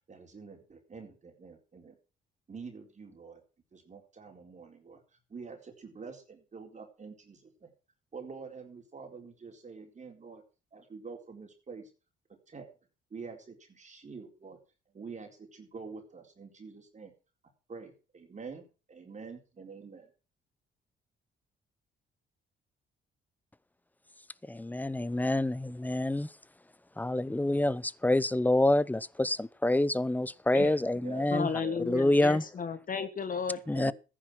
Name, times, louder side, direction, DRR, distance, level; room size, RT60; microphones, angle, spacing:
voice 1, 0.1-2.0 2.5-3.4 3.7-5.0 5.3-7.7 8.1-10.4 10.7-11.9 12.3-12.7 13.1-14.6 14.9-17.1 17.7-20.1 30.5-31.3 31.6-31.8 33.7-33.9, right 5 dB, 35° right, 4.1 m, -46 dB
voice 2, 24.5-26.3 27.0-31.5 31.9-32.4 33.7-33.9, left 1 dB, 10° left, 0.7 m, -27 dB
voice 3, 31.3-33.6, left 6 dB, 45° left, 1.3 m, -33 dB
14.5 x 10.0 x 6.1 m
cardioid pair, 90°, 20 cm